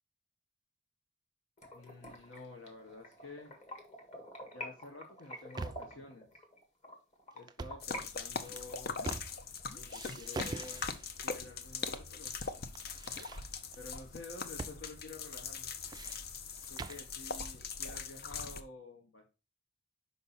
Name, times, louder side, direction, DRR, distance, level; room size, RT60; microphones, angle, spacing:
sound 1, 1.6-8.0 8.3-10.9 11.3-11.4 11.8-11.9 12.2-12.3 12.6-13.3, equal, 40° left, 1.8 m, -49 dB
voice 1, 1.7-3.5 4.5-6.3 7.3-9.1 9.7-10.9 11.2-12.3 13.8-15.7 16.7-19.3, left 2 dB, 70° left, 1 dB, 1.1 m, -50 dB
sound 2, 5.2-6.0 7.4-7.9 8.4-9.6 9.9-11.2 11.9-12.5 12.7-13.8 14.6-14.8 15.1-15.2 15.6-17.1, right 3 dB, 20° right, 0.3 m, -44 dB
sound 3, 7.8-18.6, left 5 dB, 55° left, 0.7 m, -41 dB
5.4 x 5.4 x 4.1 m, 0.30 s
head